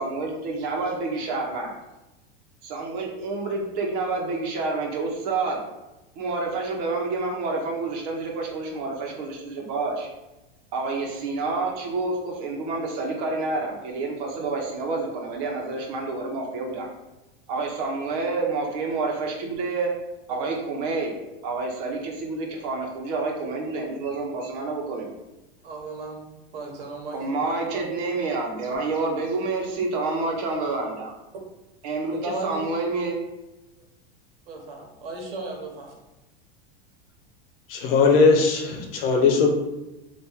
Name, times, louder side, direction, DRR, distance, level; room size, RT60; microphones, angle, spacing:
voice 1, 0.0-1.8 2.6-5.6 6.1-10.1 10.7-16.9 17.5-19.9 20.3-21.1 21.4-25.1 27.1-31.1 31.8-33.2, right 3 dB, 45° right, 0 dB, 1.0 m, -28 dB
voice 2, 25.6-26.3 26.5-27.2 27.7-27.9 32.1-32.6 34.5-36.0, right 2 dB, 75° right, 1 dB, 1.2 m, -35 dB
voice 3, 37.7-39.5, left 4 dB, 75° left, 3 dB, 1.0 m, -19 dB
3.5 x 2.6 x 4.4 m, 1.0 s
supercardioid pair, 155°, 29 cm